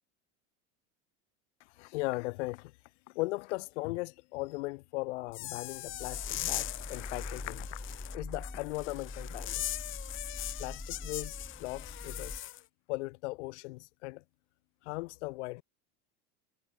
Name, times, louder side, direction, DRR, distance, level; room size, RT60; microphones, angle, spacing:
voice 1, 1.8-2.7 3.1-7.7 8.1-9.6 10.6-12.4 12.9-14.2 14.8-15.6, left 23 dB, 75° left, 3.0 m, -38 dB
sound 1, 5.3-12.6, left 15 dB, 35° left, 1.8 m, -40 dB
sound 2, 5.9-12.4, left 2 dB, 5° left, 1.0 m, -43 dB
cardioid pair, 160°, 35 cm